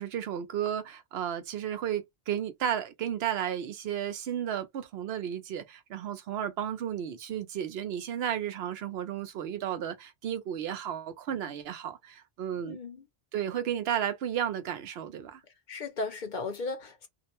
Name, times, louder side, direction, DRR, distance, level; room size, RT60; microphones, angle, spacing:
voice 1, 0.0-12.8 13.3-15.4, right 9 dB, 80° right, 0.9 m, -33 dB
voice 2, 12.6-13.0 15.7-17.1, left 3 dB, 55° left, 0.8 m, -36 dB
2.5 x 2.1 x 2.8 m
omnidirectional pair, 1.0 m